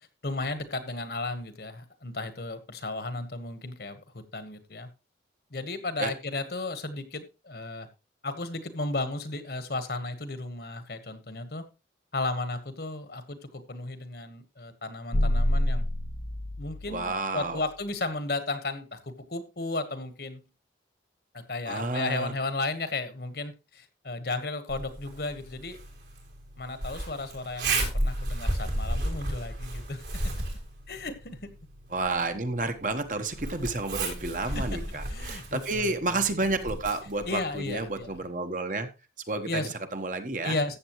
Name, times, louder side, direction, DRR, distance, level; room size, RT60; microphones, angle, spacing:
voice 1, 0.2-4.9 5.5-7.9 8.2-11.6 12.1-15.8 16.6-20.4 21.3-25.8 26.6-30.2 30.9-31.5 34.5-35.9 37.3-38.1 39.5-39.7 40.4-40.8, left 2 dB, 60° left, 10 dB, 1.4 m, -34 dB
sound 1, 15.1-17.6, left 1 dB, 85° left, 0.9 m, -28 dB
voice 2, 16.9-17.6 21.7-22.3 31.9-38.9 39.3-40.6, right 3 dB, 45° right, 7 dB, 1.2 m, -30 dB
Zipper (clothing), 24.7-38.2, right 1 dB, 80° right, 5.9 m, -34 dB
14.0 x 8.2 x 3.1 m, 0.28 s
head